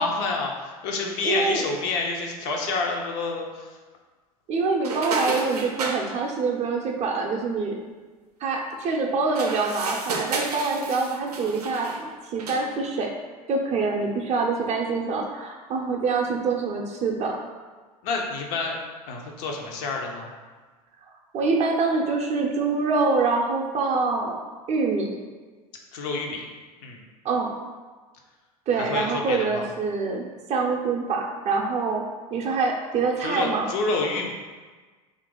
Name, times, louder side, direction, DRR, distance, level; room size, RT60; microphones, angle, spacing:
voice 1, 0.0-3.7 18.0-18.8 19.1-20.3 25.9-26.4 26.8-27.0 28.8-29.6 33.2-34.3, left 3 dB, 55° left, 1 dB, 0.6 m, -28 dB
voice 2, 1.2-1.6 4.5-7.7 8.4-13.1 13.5-17.4 21.3-24.4 24.7-25.1 27.2-27.5 28.7-32.0 32.3-33.7, right 4 dB, 35° right, 1 dB, 0.5 m, -25 dB
sound 1, 4.8-6.0 9.2-12.0 12.4-12.7, right 4 dB, 80° right, 0.5 m, -32 dB
2.8 x 2.5 x 3.7 m, 1.4 s
hypercardioid pair, 75°, 20 cm